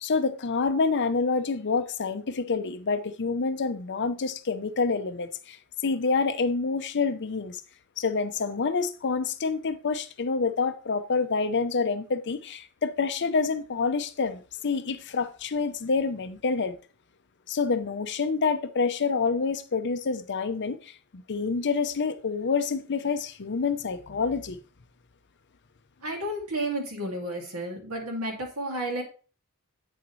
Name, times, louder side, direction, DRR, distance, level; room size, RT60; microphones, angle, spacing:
voice 1, 0.0-5.6 5.8-7.6 8.0-16.8 17.5-24.6, left 4 dB, 55° left, 0.7 m, -27 dB
voice 2, 26.0-29.0, right 1 dB, 70° right, 2.3 m, -32 dB
8.5 x 6.5 x 3.1 m
head